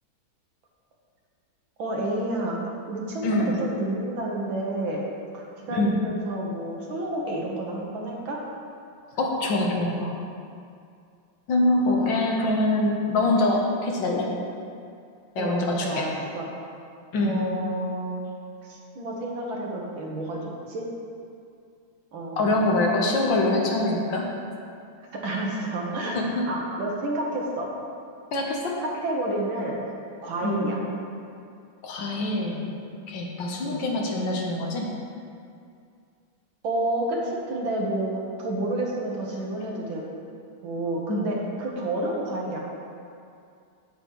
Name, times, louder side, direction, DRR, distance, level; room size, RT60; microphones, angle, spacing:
voice 1, 1.8-2.6 2.9-5.0 5.3-8.4 11.9-12.1 15.4-15.5 15.8-16.5 17.2-18.2 18.6-20.9 22.1-22.9 25.1-26.2 26.5-27.7 28.8-29.8 30.2-30.8 33.6-33.8 36.6-40.0 40.6-42.6, right 1 dB, 75° right, -2 dB, 1.9 m, -30 dB
voice 2, 9.2-10.1 11.5-14.3 15.3-16.1 17.1-17.3 22.4-24.3 26.1-26.5 28.3-28.7 30.4-30.7 31.8-32.6 33.1-34.9 41.1-41.3, left 2 dB, 70° left, -1 dB, 1.6 m, -24 dB
8.4 x 8.1 x 3.1 m, 2.4 s
omnidirectional pair, 2.2 m